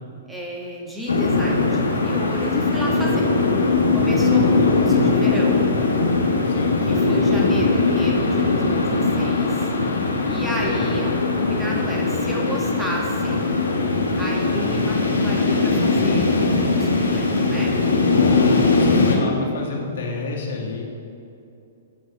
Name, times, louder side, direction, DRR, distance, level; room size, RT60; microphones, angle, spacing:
voice 1, 0.3-3.3 3.9-5.7 6.8-9.7 10.3-13.4 14.2-17.8, equal, 5° right, -3 dB, 1.4 m, -31 dB
sound 1, 1.1-19.2, left 3 dB, 90° left, 1.1 m, -20 dB
voice 2, 4.1-4.8 6.4-6.8 10.6-11.2 14.6-14.8 15.0-15.2 18.1-20.8, left 4 dB, 65° left, -2 dB, 1.6 m, -31 dB
7.9 x 6.3 x 4.1 m, 2.7 s
hypercardioid pair, 125°, 0 cm